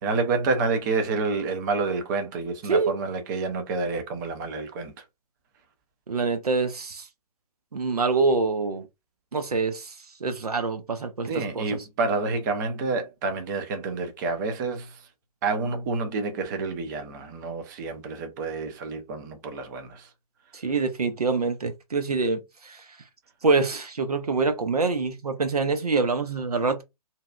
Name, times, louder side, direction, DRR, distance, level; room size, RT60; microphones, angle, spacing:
voice 1, 0.0-4.9 11.3-15.0 15.4-20.1, right 3 dB, 30° right, 0.6 m, -28 dB
voice 2, 6.1-7.1 7.7-8.8 9.3-9.9 10.2-11.8 20.5-22.8 23.4-26.8, right 4 dB, 75° right, 0.6 m, -25 dB
2.7 x 2.3 x 2.2 m
figure-of-eight pair, 120°, 20 cm